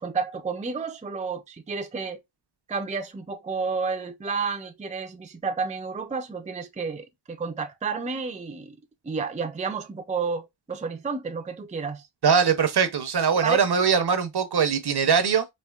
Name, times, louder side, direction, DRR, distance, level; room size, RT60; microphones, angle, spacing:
voice 1, 0.0-2.2 2.7-8.8 9.0-12.1 13.4-13.6, right 5 dB, 15° right, 0.4 m, -31 dB
voice 2, 12.2-15.4, right 6 dB, 55° right, 0.7 m, -21 dB
4.3 x 2.7 x 2.3 m
wide cardioid pair, 115°, 46 cm